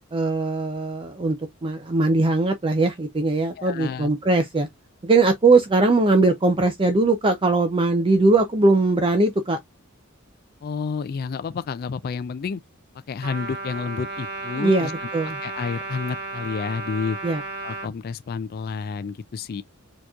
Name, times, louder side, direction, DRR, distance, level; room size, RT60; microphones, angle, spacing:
voice 1, 0.1-4.7 5.0-9.6 14.5-15.4 17.2-17.4, right 3 dB, 25° right, 0.5 m, -20 dB
voice 2, 3.6-4.1 10.6-12.6 13.1-15.1 15.4-17.2 17.6-19.6, left 5 dB, 45° left, 0.3 m, -30 dB
Trumpet, 13.2-17.9, right 3 dB, 55° right, 1.2 m, -33 dB
4.4 x 2.9 x 2.3 m
head